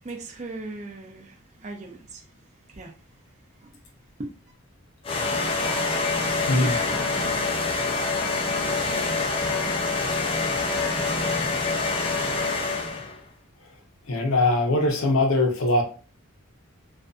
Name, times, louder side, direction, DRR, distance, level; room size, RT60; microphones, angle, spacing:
voice 1, 0.0-3.0 3.6-3.7 4.2-4.3 6.6-6.9, right 2 dB, 35° right, 0.5 m, -39 dB
sound 1, 5.0-13.2, left 3 dB, 25° left, 0.3 m, -26 dB
voice 2, 14.1-15.8, left 2 dB, 70° left, 0.7 m, -21 dB
2.6 x 2.4 x 2.3 m
head